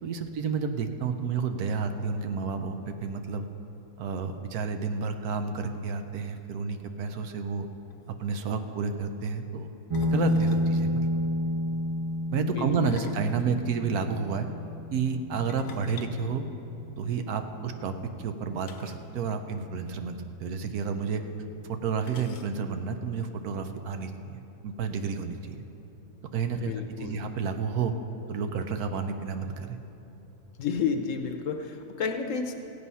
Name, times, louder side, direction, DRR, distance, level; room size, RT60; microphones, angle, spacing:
voice 1, 0.0-3.5 4.0-7.7 8.1-9.7 10.1-11.0 12.3-14.5 14.9-16.4 17.0-21.2 21.6-25.6 26.3-26.7 27.0-27.9 28.3-29.8, right 5 dB, 75° right, 7 dB, 1.2 m, -30 dB
sound 1, 7.6-7.7 7.9-8.1 9.9-10.7 12.7-14.1 15.5-17.1 18.6-19.1 19.4-19.5 19.8-20.0 21.0-21.1 22.0-22.9, left 6 dB, 80° left, 1.3 m, -49 dB
sound 2, 9.9-18.9, equal, 50° right, 0.4 m, -31 dB
voice 2, 26.5-27.2 30.6-32.5, left 6 dB, 60° left, 5 dB, 1.0 m, -31 dB
15.5 x 8.4 x 5.5 m, 2.9 s
omnidirectional pair, 1.6 m